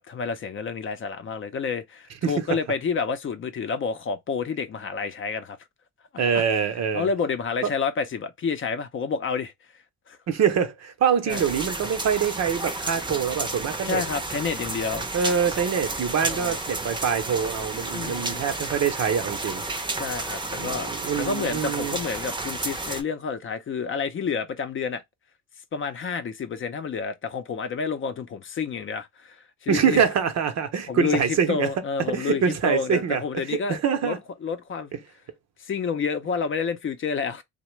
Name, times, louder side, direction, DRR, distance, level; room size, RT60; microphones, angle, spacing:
voice 1, 0.0-5.6 6.1-6.4 6.9-9.5 10.1-10.2 11.3-11.4 13.8-15.1 16.3-16.6 17.9-18.4 20.0-25.0 25.7-30.0 30.9-34.2 34.4-35.0 35.6-37.4, left 5 dB, 45° left, 0.6 m, -29 dB
voice 2, 6.2-7.1 10.3-14.0 15.1-19.6 20.6-22.0 29.7-31.7 32.0-33.2 33.5-34.2, right 7 dB, 60° right, 0.7 m, -25 dB
sound 1, 11.3-23.0, right 2 dB, 15° right, 0.6 m, -32 dB
2.8 x 2.1 x 3.1 m
cardioid pair, 90°, 30 cm